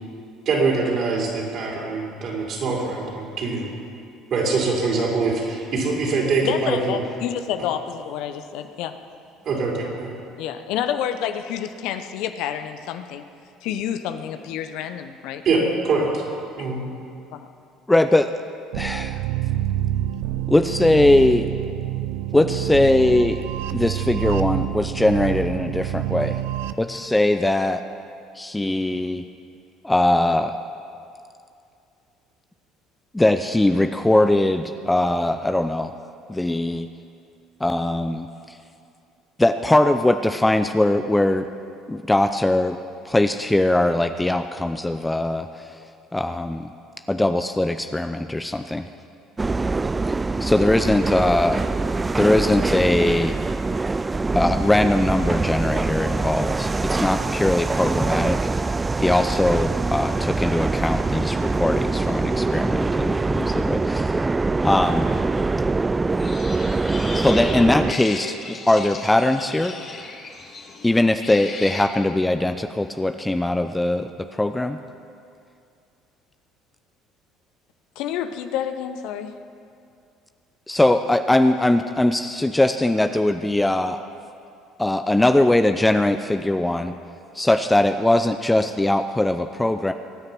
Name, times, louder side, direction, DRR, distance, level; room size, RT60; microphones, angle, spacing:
voice 1, 0.4-3.7 4.3-7.0 9.4-10.1 15.4-16.2 16.6-16.8, right 3 dB, 50° right, -2 dB, 4.9 m, -23 dB
voice 2, 6.4-8.9 10.4-13.2 13.6-15.4 17.3-17.5 78.0-79.3, left 9 dB, 65° left, 9 dB, 0.9 m, -29 dB
voice 3, 17.9-18.3 18.7-19.2 20.5-21.5 22.3-23.4 23.7-26.4 26.8-27.8 28.4-29.2 29.8-30.6 33.1-35.9 36.3-36.9 37.6-38.6 39.4-41.5 41.9-42.8 43.0-45.5 46.1-46.7 47.1-48.9 50.4-51.6 52.2-53.4 54.3-58.4 59.0-64.2 64.6-65.1 67.1-69.7 70.8-74.8 80.7-84.0 84.8-86.9 87.3-89.9, left 1 dB, 10° left, 8 dB, 0.7 m, -20 dB
sound 1, 18.7-26.7, right 13 dB, 70° right, 0.5 m, -27 dB
sound 2, 49.4-67.9, right 3 dB, 20° right, 0.4 m, -24 dB
sound 3, 66.2-71.8, left 4 dB, 35° left, 2.3 m, -36 dB
23.5 x 9.8 x 6.1 m, 2.5 s
hypercardioid pair, 60°, 0 cm